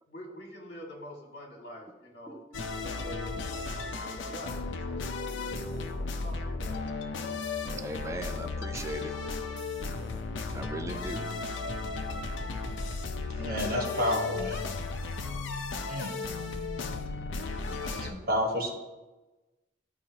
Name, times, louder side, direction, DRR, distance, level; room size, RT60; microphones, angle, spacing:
voice 1, 0.1-2.4 2.8-5.6 6.2-6.8, equal, 60° left, -1 dB, 1.8 m, -46 dB
sound 1, 2.5-18.1, left 3 dB, 85° left, 0.6 m, -35 dB
voice 2, 7.7-9.2 10.5-11.3, right 1 dB, 15° right, 6 dB, 0.4 m, -38 dB
voice 3, 13.4-14.6 15.9-16.1 17.9-18.8, equal, 50° right, 0 dB, 1.3 m, -30 dB
11.5 x 4.8 x 2.9 m, 1.1 s
head